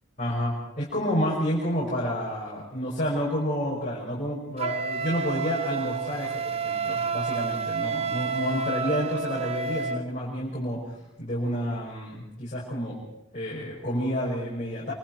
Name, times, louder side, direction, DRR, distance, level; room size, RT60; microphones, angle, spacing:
voice 1, 0.2-13.0 13.3-14.9, equal, 35° left, -6 dB, 5.9 m, -29 dB
Wind instrument woodwind instrument, 4.6-10.0, right 5 dB, 30° right, 0.8 m, -30 dB
27.5 x 24.5 x 4.6 m, 0.87 s
head